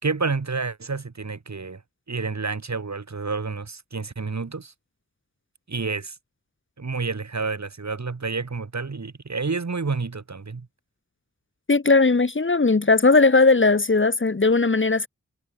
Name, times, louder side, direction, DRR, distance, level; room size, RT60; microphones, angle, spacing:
voice 1, 0.0-1.8 2.1-4.7 5.7-6.2 6.8-10.7, right 4 dB, 60° right, 3.9 m, -29 dB
voice 2, 11.7-15.1, left 3 dB, 40° left, 1.5 m, -18 dB
wide cardioid pair, 55°, 31 cm